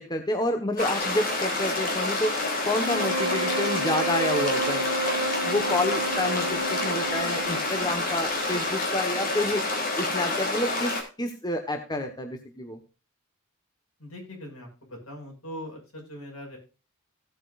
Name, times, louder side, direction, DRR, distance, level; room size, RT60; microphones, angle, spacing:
voice 1, 0.0-2.3 2.6-4.8 5.4-9.7 10.0-12.8, left 1 dB, 20° left, 5 dB, 1.4 m, -29 dB
sound 1, 0.8-11.0, left 2 dB, 40° left, 3.3 m, -28 dB
sound 2, 2.7-8.1, right 2 dB, 40° right, 2.1 m, -31 dB
voice 2, 14.0-16.6, equal, 75° left, 1 dB, 6.3 m, -41 dB
16.5 x 8.4 x 2.5 m, 0.33 s
head